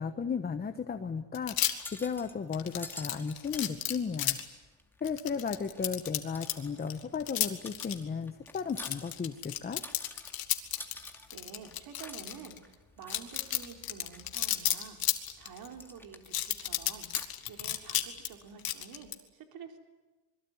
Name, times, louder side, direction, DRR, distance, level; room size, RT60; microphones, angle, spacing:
voice 1, 0.0-1.7 2.0-4.4 5.0-9.8, left 6 dB, 20° left, 8 dB, 1.2 m, -35 dB
sound 1, 1.3-2.0 2.5-4.4 5.0-6.5 6.9-7.9 8.5-12.6 13.0-15.7 16.3-18.3 18.6-19.1, left 12 dB, 55° left, 2.5 m, -32 dB
sound 2, 1.4-18.7, left 1 dB, 5° left, 2.4 m, -51 dB
voice 2, 11.3-15.0 15.4-19.8, right 6 dB, 55° right, 4 dB, 3.8 m, -49 dB
26.5 x 22.5 x 9.6 m, 1.2 s
cardioid pair, 125°, 43 cm